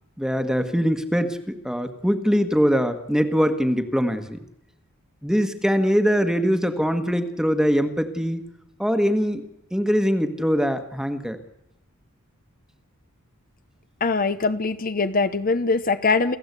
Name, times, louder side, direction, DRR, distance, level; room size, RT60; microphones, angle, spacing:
voice 1, 0.2-4.4 5.2-8.4 8.8-9.4 9.7-11.4, equal, 5° right, 8 dB, 1.5 m, -22 dB
voice 2, 14.0-16.4, left 4 dB, 40° left, 11 dB, 0.9 m, -22 dB
28.5 x 15.0 x 8.3 m, 0.88 s
head